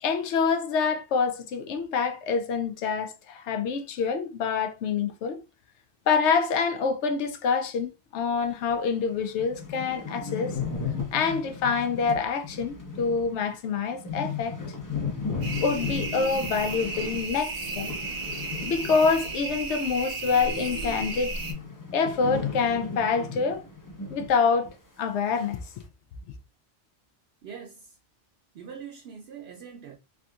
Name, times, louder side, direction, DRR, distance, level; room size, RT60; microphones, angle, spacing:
voice 1, 0.0-5.4 6.1-10.6 11.1-14.6 15.6-17.9 18.6-21.4 21.9-23.6 24.1-24.7 25.0-25.6, left 5 dB, 80° left, 0.9 m, -26 dB
sound 1, 8.7-8.8 9.1-9.2 9.4-19.6 19.9-24.4 24.6-24.7 25.4-25.8, left 5 dB, 20° left, 0.6 m, -35 dB
sound 2, 15.4-21.5, right 3 dB, 85° right, 1.2 m, -34 dB
voice 2, 27.4-28.0 28.5-30.0, right 7 dB, 65° right, 0.8 m, -43 dB
3.5 x 2.7 x 2.3 m
omnidirectional pair, 1.2 m